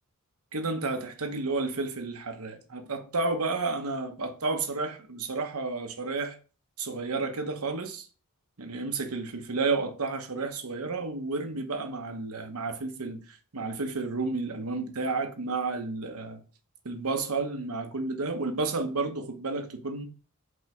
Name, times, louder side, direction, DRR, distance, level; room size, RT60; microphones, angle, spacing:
voice 1, 0.5-6.4 6.8-8.1 8.6-16.4 16.8-20.0, right 3 dB, 80° right, 1.0 m, -31 dB
5.4 x 4.0 x 4.5 m
head